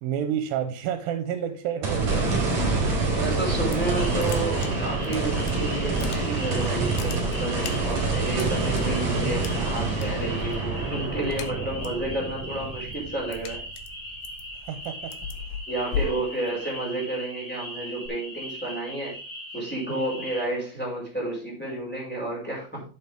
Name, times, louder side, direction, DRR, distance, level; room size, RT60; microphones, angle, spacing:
voice 1, 0.0-2.7 14.7-15.1 16.0-16.2 19.9-20.1, right 9 dB, 85° right, 7 dB, 2.7 m, -30 dB
sound 1, 1.8-14.2 14.6-14.7 18.1-18.2, right 3 dB, 55° right, 4.8 m, -27 dB
voice 2, 3.1-13.6 15.7-19.1 19.5-22.8, right 2 dB, 5° left, -4 dB, 5.1 m, -31 dB
sound 2, 3.4-3.9 4.2-5.5 5.8-6.5 6.8-8.8 9.4-10.1 10.4-10.7 11.0-12.0 12.4-17.0, left 7 dB, 85° left, 2.8 m, -36 dB
sound 3, 3.8-20.4, equal, 55° left, 5.3 m, -40 dB
11.0 x 7.5 x 3.6 m, 0.37 s
omnidirectional pair, 4.1 m